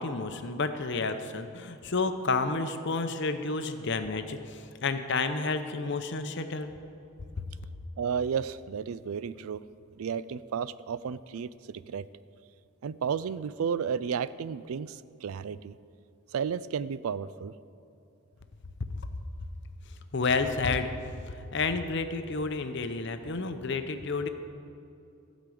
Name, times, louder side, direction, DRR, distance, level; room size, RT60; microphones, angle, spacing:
voice 1, 0.0-6.7 7.4-7.5 20.1-20.9 21.3-24.3, left 3 dB, 55° left, 8 dB, 0.7 m, -30 dB
voice 2, 8.0-9.6 10.0-12.0 12.8-15.8 16.3-17.5, right 7 dB, 80° right, 16 dB, 0.4 m, -32 dB
15.0 x 5.1 x 7.7 m, 2.6 s
head